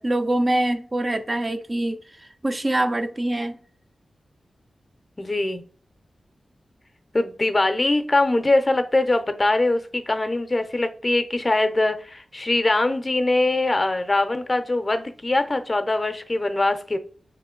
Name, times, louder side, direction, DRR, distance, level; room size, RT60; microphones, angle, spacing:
voice 1, 0.0-3.6, right 1 dB, 30° right, 0.4 m, -24 dB
voice 2, 5.2-5.6 7.1-17.0, left 2 dB, 30° left, 0.5 m, -22 dB
4.1 x 3.0 x 3.7 m
wide cardioid pair, 70°, 0 cm